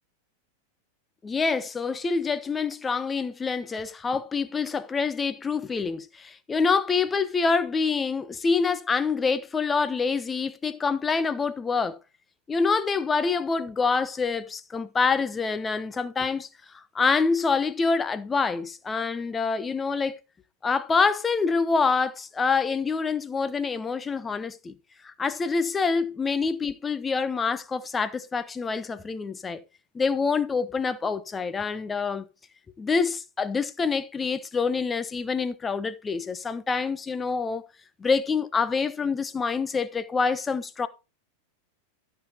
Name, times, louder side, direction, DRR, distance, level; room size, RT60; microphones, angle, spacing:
voice 1, 1.2-12.0 12.5-16.5 16.7-20.2 20.6-24.7 25.0-29.6 29.9-32.3 32.8-37.7 38.0-40.9, left 4 dB, 15° left, 0.8 m, -26 dB
14.0 x 6.8 x 2.9 m
figure-of-eight pair, 90°, 0 cm